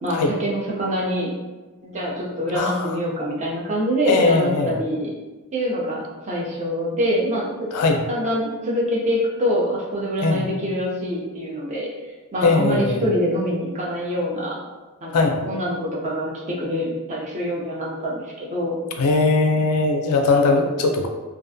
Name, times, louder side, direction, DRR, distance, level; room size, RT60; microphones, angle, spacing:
voice 1, 0.0-1.3 1.8-5.1 5.5-7.5 8.1-11.9 12.3-14.6 15.0-15.8 16.0-18.8, equal, 35° right, -4 dB, 0.6 m, -25 dB
voice 2, 2.5-3.0 4.1-4.8 7.7-8.0 10.2-10.5 12.4-13.0 15.1-15.3 19.0-21.1, left 3 dB, 85° left, 4 dB, 0.4 m, -19 dB
2.4 x 2.2 x 2.5 m, 1.2 s
head